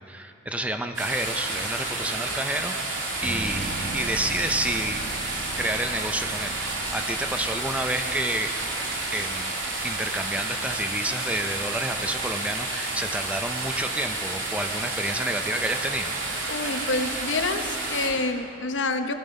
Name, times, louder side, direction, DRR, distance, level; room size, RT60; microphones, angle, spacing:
voice 1, 0.1-5.0 5.6-8.5 9.1-16.2, right 1 dB, 5° right, 7 dB, 0.5 m, -30 dB
sound 1, 1.0-18.1, right 2 dB, 85° right, 3.2 m, -30 dB
sound 2, 3.2-14.8 15.1-15.2, right 2 dB, 45° right, 1.0 m, -41 dB
voice 2, 16.5-19.1, left 3 dB, 70° left, 7 dB, 1.0 m, -27 dB
19.5 x 13.5 x 5.3 m, 2.6 s
head